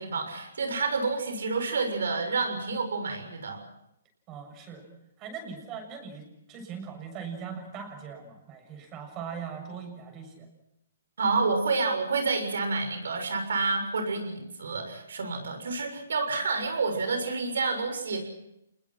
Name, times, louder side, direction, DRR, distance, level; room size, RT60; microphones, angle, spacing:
voice 1, 0.0-3.6 11.2-18.3, right 4 dB, 75° right, 5 dB, 7.0 m, -29 dB
voice 2, 4.3-4.9 5.2-10.5, right 6 dB, 25° right, 6 dB, 7.0 m, -40 dB
27.5 x 21.0 x 6.1 m, 0.83 s
hypercardioid pair, 150°, 0 cm